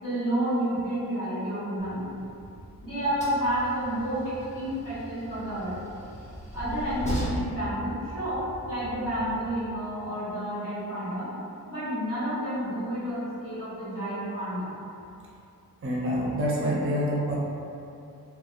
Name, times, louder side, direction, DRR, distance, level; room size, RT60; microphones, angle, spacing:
voice 1, 0.0-2.2 2.8-5.8 6.5-11.3 11.7-14.7, equal, 65° left, -12 dB, 1.3 m, -30 dB
Train, 1.8-9.5, right 1 dB, 20° left, 0.6 m, -38 dB
voice 2, 15.8-17.4, equal, 40° right, -5 dB, 0.5 m, -27 dB
2.7 x 2.0 x 2.4 m, 2.6 s
wide cardioid pair, 115°, 35 cm